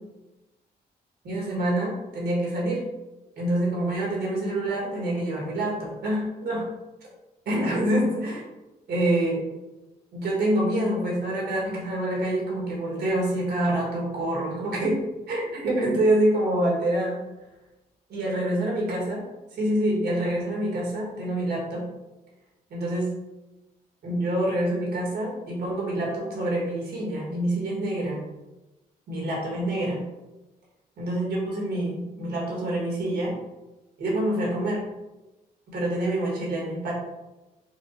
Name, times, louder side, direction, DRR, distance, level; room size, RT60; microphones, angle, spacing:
voice 1, 1.2-2.8 3.4-6.6 7.4-8.4 8.9-9.4 10.1-15.0 15.3-17.2 18.1-19.2 19.6-21.8 22.7-23.1 24.0-28.2 29.1-30.0 31.0-33.3 34.0-34.8 35.7-36.9, right 1 dB, 75° right, -4 dB, 1.5 m, -26 dB
4.6 x 2.4 x 2.6 m, 1.0 s
cardioid pair, 65°, 17 cm